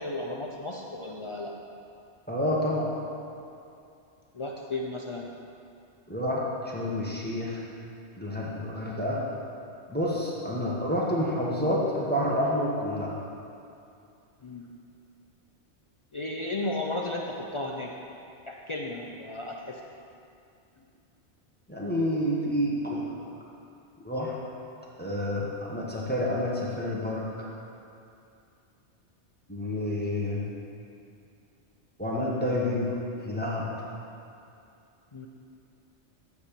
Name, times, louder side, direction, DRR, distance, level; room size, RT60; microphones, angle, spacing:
voice 1, 0.0-1.5 4.3-5.3 14.4-14.7 16.1-17.9 18.5-19.8 35.1-35.3, left 2 dB, 50° left, -1 dB, 0.3 m, -34 dB
voice 2, 2.3-2.9 6.1-7.6 8.2-9.2 9.9-13.1 21.7-23.0 24.0-24.3 25.0-27.3 29.5-30.4 32.0-32.9 33.2-33.7, left 1 dB, 10° left, -5 dB, 1.0 m, -29 dB
8.4 x 4.3 x 6.8 m, 2.5 s
omnidirectional pair, 1.2 m